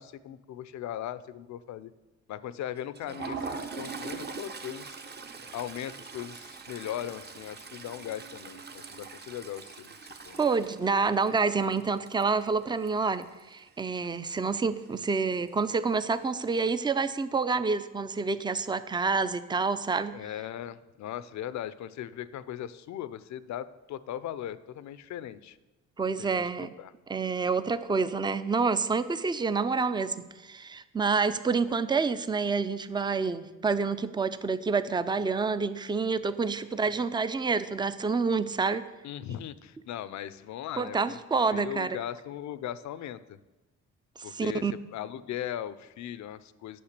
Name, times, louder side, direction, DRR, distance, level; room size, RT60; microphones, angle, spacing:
voice 1, 0.0-1.9 2.3-5.0 5.5-9.9 10.2-10.4 20.1-25.6 26.2-26.9 36.9-37.0 39.0-41.2 41.5-43.4 44.2-46.8, left 11 dB, 70° left, 16 dB, 0.6 m, -39 dB
Toilet flush, 2.8-13.5 13.8-14.1 14.4-14.5 15.5-16.0, right 4 dB, 35° right, 0.9 m, -42 dB
voice 2, 10.4-13.3 13.5-20.2 26.0-26.7 27.1-38.8 40.8-42.0 44.2-44.7, right 4 dB, 15° right, 13 dB, 0.5 m, -28 dB
8.7 x 6.3 x 6.7 m, 1.1 s
cardioid pair, 90°, 30 cm